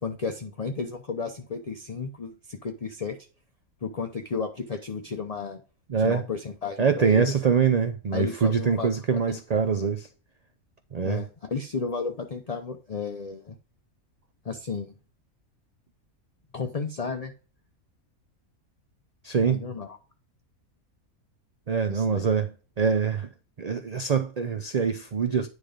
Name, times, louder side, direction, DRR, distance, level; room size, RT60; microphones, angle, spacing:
voice 1, 0.0-3.2 3.8-5.6 6.0-7.4 8.1-9.6 11.0-13.5 14.4-14.9 16.5-17.3 19.4-20.0 21.9-22.3, left 4 dB, 40° left, 0.5 m, -33 dB
voice 2, 5.9-6.2 6.8-10.1 10.9-11.2 19.2-19.6 21.7-22.5 22.8-23.3 23.6-25.5, right 6 dB, 80° right, 0.3 m, -24 dB
9.6 x 3.3 x 5.0 m
omnidirectional pair, 1.5 m